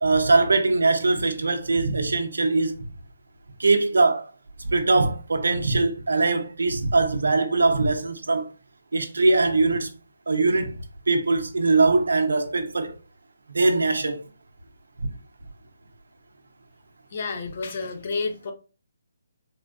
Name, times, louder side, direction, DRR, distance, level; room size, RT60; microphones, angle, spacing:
voice 1, 0.0-2.8 3.6-4.2 4.6-8.5 8.9-9.9 10.3-10.8 11.1-13.0 13.5-14.2 15.0-15.1, right 3 dB, 85° right, 0.6 m, -21 dB
voice 2, 17.1-18.5, left 4 dB, 50° left, 0.6 m, -30 dB
3.5 x 2.2 x 2.5 m
hypercardioid pair, 155°, 0 cm